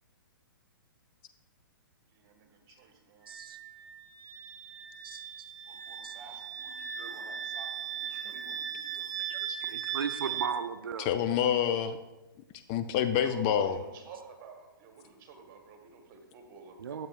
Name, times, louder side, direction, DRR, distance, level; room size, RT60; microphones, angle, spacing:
voice 1, 2.1-3.3 5.6-9.2 13.2-17.1, right 4 dB, 35° right, 3 dB, 1.5 m, -50 dB
Wind instrument woodwind instrument, 3.2-10.5, right 9 dB, 55° right, 0.8 m, -38 dB
voice 2, 3.3-3.6 5.0-5.5 6.0-6.1 9.7-11.1 16.8-17.1, right 7 dB, 75° right, 9 dB, 0.4 m, -36 dB
voice 3, 9.3-9.8 11.1-12.0 12.7-13.8, left 9 dB, 30° left, 9 dB, 0.4 m, -28 dB
11.5 x 7.5 x 2.4 m, 1.1 s
hypercardioid pair, 125°, 12 cm